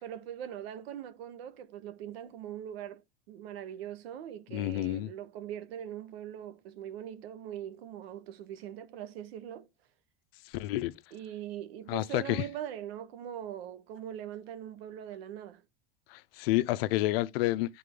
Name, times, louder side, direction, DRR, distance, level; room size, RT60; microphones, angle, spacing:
voice 1, 0.0-3.0 3.3-9.7 11.1-15.6, right 10 dB, 85° right, 1.2 m, -41 dB
voice 2, 4.5-5.1 10.4-10.9 11.9-12.4 16.1-17.8, left 17 dB, 70° left, 0.6 m, -29 dB
11.0 x 3.8 x 3.7 m
supercardioid pair, 135°, 30 cm